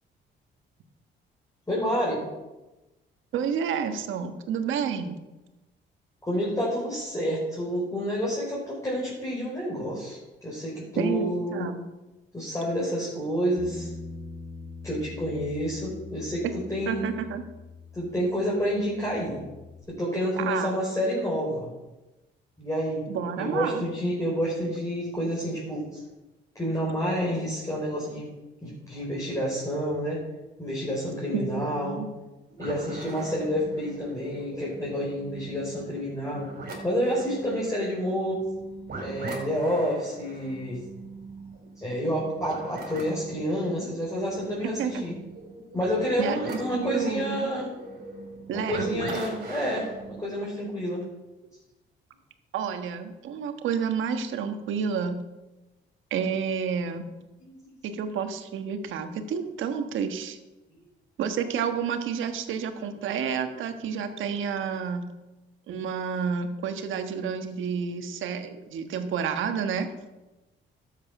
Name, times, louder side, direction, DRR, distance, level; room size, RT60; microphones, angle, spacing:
voice 1, 1.7-2.2 6.2-11.7 12.3-13.9 14.8-17.1 17.9-19.4 19.9-21.7 22.6-23.0 23.4-26.0 26.5-28.3 28.6-30.2 30.6-32.0 32.6-36.5 36.8-38.4 39.0-40.8 41.8-45.2 45.7-47.7 48.5-51.0 57.5-57.6, equal, 15° left, -5 dB, 4.8 m, -29 dB
voice 2, 3.3-5.2 11.0-11.8 16.9-17.4 20.4-20.7 23.1-23.8 31.3-32.1 44.8-45.0 46.2-47.5 48.5-49.1 52.5-55.2 56.1-57.1 57.8-60.4 61.2-65.0 65.7-69.9, right 6 dB, 80° right, 7 dB, 1.4 m, -30 dB
Bass guitar, 13.6-19.8, left 3 dB, 35° right, 3.8 m, -43 dB
sound 1, 32.5-50.2, right 3 dB, 50° right, 4.8 m, -41 dB
12.5 x 8.2 x 6.0 m, 1.1 s
cardioid pair, 90°, 20 cm